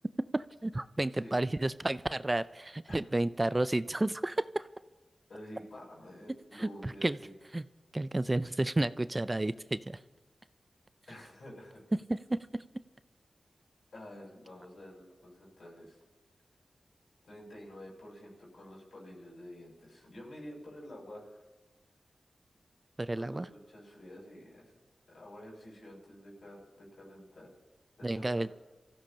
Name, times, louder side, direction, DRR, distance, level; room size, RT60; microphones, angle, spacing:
voice 1, 0.3-4.7 6.6-7.2 7.5-7.6 7.9-10.0 12.1-12.6 23.0-23.5 28.0-28.5, right 2 dB, 25° right, 15 dB, 0.4 m, -31 dB
voice 2, 5.3-7.3 11.1-11.8 13.9-16.0 17.2-21.4 23.1-24.8 25.1-27.5 28.0-28.5, equal, 75° left, -4 dB, 6.7 m, -49 dB
25.0 x 15.0 x 2.9 m, 1.2 s
cardioid pair, 55°, 0 cm